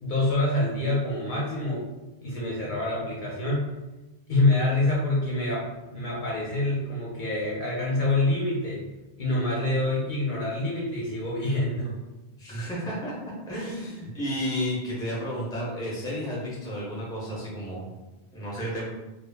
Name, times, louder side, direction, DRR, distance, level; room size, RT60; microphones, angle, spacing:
voice 1, 0.0-1.8 2.2-3.7 4.3-8.8 9.2-11.9, left 2 dB, 60° left, -5 dB, 0.7 m, -26 dB
voice 2, 12.4-17.9 18.3-18.8, equal, 5° left, -5 dB, 0.6 m, -32 dB
2.2 x 2.0 x 3.3 m, 1.1 s
omnidirectional pair, 1.0 m